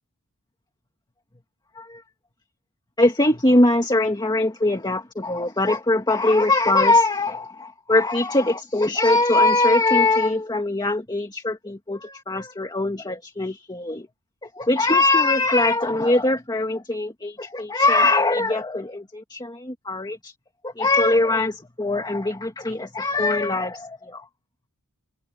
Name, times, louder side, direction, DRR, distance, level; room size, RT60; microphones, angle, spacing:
voice 1, 3.0-14.1 14.4-20.3 20.6-24.3, left 2 dB, 20° left, 2.0 m, -21 dB
head